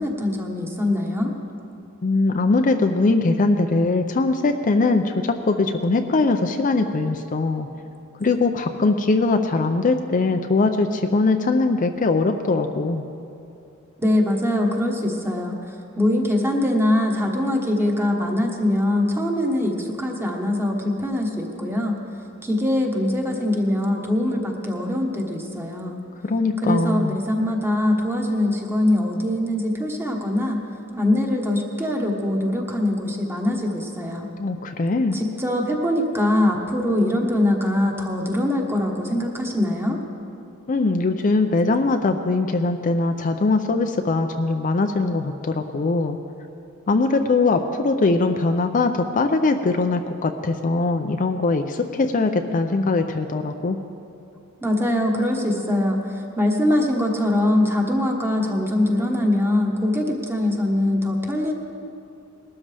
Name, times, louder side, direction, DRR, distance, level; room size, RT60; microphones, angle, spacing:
voice 1, 0.0-1.3 14.0-21.9 22.4-26.0 26.6-30.6 30.9-34.3 35.1-40.0 54.6-61.5, left 1 dB, 10° right, 1 dB, 1.3 m, -22 dB
voice 2, 2.0-7.7 8.2-13.1 26.2-27.2 34.4-35.2 40.7-46.2 46.9-53.8, left 3 dB, 40° left, 6 dB, 0.5 m, -21 dB
20.0 x 12.5 x 3.4 m, 2.6 s
head